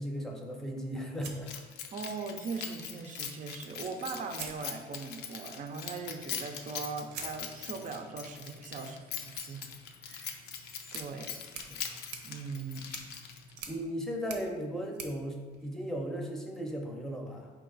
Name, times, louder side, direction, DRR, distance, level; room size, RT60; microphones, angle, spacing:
voice 1, 0.0-1.5 11.7-11.9 13.7-17.5, equal, 5° left, 1 dB, 0.7 m, -36 dB
sound 1, 1.2-2.3 3.7-3.8 4.3-5.3 7.1-16.3, right 5 dB, 85° right, 0.7 m, -49 dB
Keys jangling, 1.5-13.6, left 7 dB, 75° left, 0.6 m, -42 dB
voice 2, 1.9-9.7 10.0-10.4 10.9-11.7 12.2-12.9, right 4 dB, 50° right, 5 dB, 0.5 m, -40 dB
4.7 x 2.9 x 3.9 m, 1.4 s
cardioid pair, 110°, 17 cm